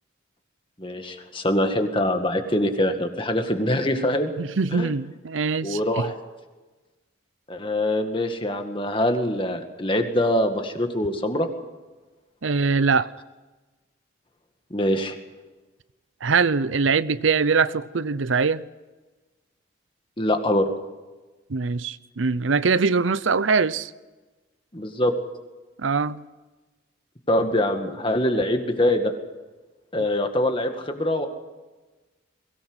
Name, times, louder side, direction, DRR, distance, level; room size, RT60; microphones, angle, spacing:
voice 1, 0.8-4.3 4.7-4.9 5.6-6.1 7.5-11.5 14.7-15.2 20.2-20.7 24.7-25.1 27.3-29.1 29.9-31.3, left 1 dB, 25° left, 2.0 m, -24 dB
voice 2, 4.4-6.1 12.4-13.1 16.2-18.6 21.5-23.9 25.8-26.2, right 4 dB, 75° right, 0.7 m, -22 dB
22.5 x 17.5 x 8.1 m
head